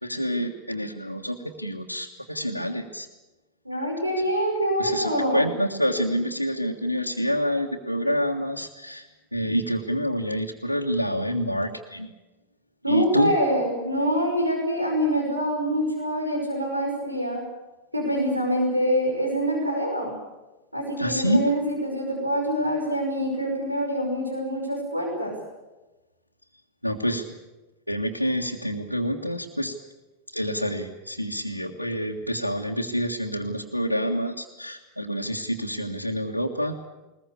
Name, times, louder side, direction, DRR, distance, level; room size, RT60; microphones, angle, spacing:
voice 1, 0.0-3.1 4.2-4.3 4.8-9.1 9.3-12.1 12.9-13.3 21.0-21.5 26.8-27.2 27.9-29.7 30.3-36.9, equal, 90° left, -3 dB, 1.8 m, -27 dB
voice 2, 3.7-5.5 12.8-17.4 17.9-20.1 20.7-25.4, equal, 85° right, 1 dB, 5.7 m, -25 dB
21.5 x 21.0 x 8.5 m, 1.1 s
figure-of-eight pair, 90°, 0 cm